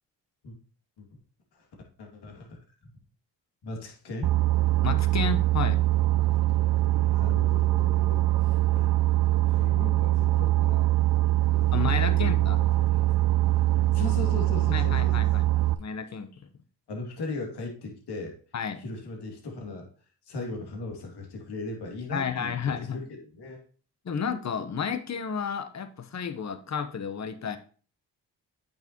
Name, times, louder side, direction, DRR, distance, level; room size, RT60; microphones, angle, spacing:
voice 1, 2.0-2.6 3.6-4.4 7.1-8.9 9.5-10.9 11.5-12.8 13.9-15.2 16.3-16.4 16.9-18.4 18.8-19.9 20.2-23.6, left 3 dB, 65° left, 1 dB, 2.6 m, -38 dB
Boat Water vehicle, 4.2-15.7, right 15 dB, 65° right, 0.7 m, -23 dB
voice 2, 4.8-5.8 11.7-12.6 14.7-15.5 15.8-16.3 18.5-18.8 22.1-23.0 24.0-27.6, left 6 dB, 40° left, 11 dB, 1.1 m, -31 dB
8.7 x 6.2 x 3.0 m, 0.40 s
hypercardioid pair, 50°, 42 cm